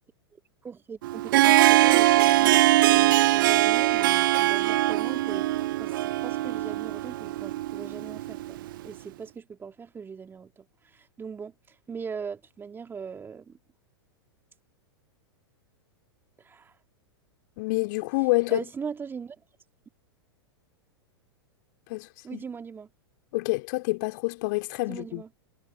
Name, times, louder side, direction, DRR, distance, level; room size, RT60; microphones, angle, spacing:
voice 1, 0.3-5.5 5.8-13.6 16.4-16.7 18.5-19.4 22.2-22.9 24.9-25.3, right 6 dB, 15° right, 2.0 m, -40 dB
Harp, 1.0-8.8, right 16 dB, 50° right, 0.7 m, -22 dB
voice 2, 17.6-18.6 21.9-22.4 23.3-25.2, left 25 dB, 45° left, 2.9 m, -27 dB
figure-of-eight pair, 100°, 14 cm